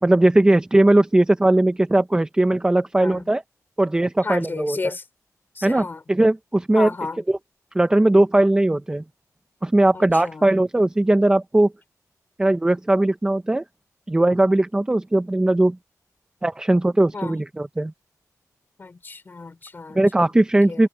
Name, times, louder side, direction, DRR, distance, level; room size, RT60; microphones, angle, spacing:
voice 1, 0.0-3.4 3.8-4.8 5.6-6.9 7.3-7.4 7.7-9.0 9.6-11.7 12.4-13.6 14.1-15.8 16.4-17.9 19.9-20.9, right 1 dB, 15° right, 0.7 m, -19 dB
voice 2, 3.0-3.3 4.2-5.0 5.5-6.0 6.7-7.2 9.9-10.5 17.1-17.4 18.8-20.3 20.7-20.9, left 3 dB, 35° left, 3.7 m, -33 dB
wide cardioid pair, 160°, 6 cm